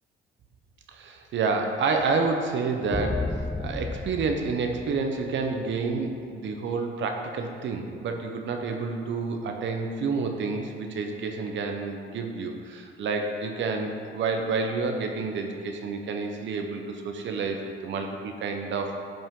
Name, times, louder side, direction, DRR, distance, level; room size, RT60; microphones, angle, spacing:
voice 1, 0.9-3.3 3.6-19.0, right 4 dB, 70° right, 3 dB, 0.9 m, -29 dB
sound 1, 2.9-5.5, left 2 dB, 5° left, 0.4 m, -33 dB
10.0 x 5.4 x 3.8 m, 2.2 s
cardioid pair, 90°, 20 cm